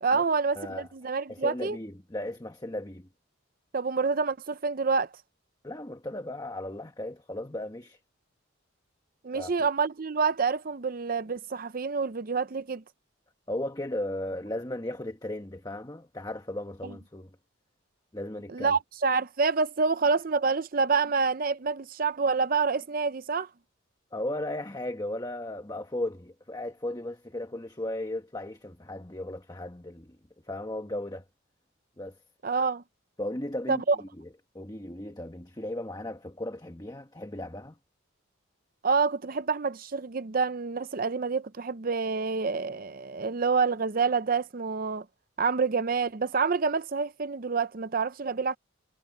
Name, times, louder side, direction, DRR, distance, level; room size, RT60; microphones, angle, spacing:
voice 1, 0.0-1.8 3.7-5.1 9.2-12.8 16.8-16.9 18.5-23.5 32.4-32.8 33.7-34.0 38.8-45.0 45.4-48.6, right 4 dB, 45° right, 0.6 m, -27 dB
voice 2, 0.6-0.9 1.3-3.1 5.6-8.0 9.3-9.5 13.5-17.3 18.1-18.8 24.1-30.2 30.5-31.2 32.0-32.2 33.2-34.3 34.5-37.8, left 1 dB, 20° left, 1.3 m, -36 dB
head